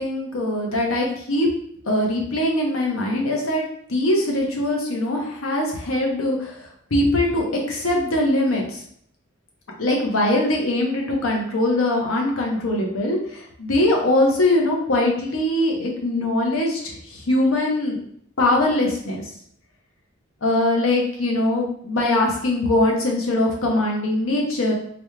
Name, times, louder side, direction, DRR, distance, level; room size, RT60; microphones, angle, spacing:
voice 1, 0.0-1.5 1.9-3.6 3.9-6.6 6.9-8.8 9.8-16.8 17.1-18.0 18.4-19.2 20.4-24.7, left 1 dB, 75° left, 0 dB, 0.9 m, -21 dB
4.0 x 2.3 x 3.2 m, 0.65 s
head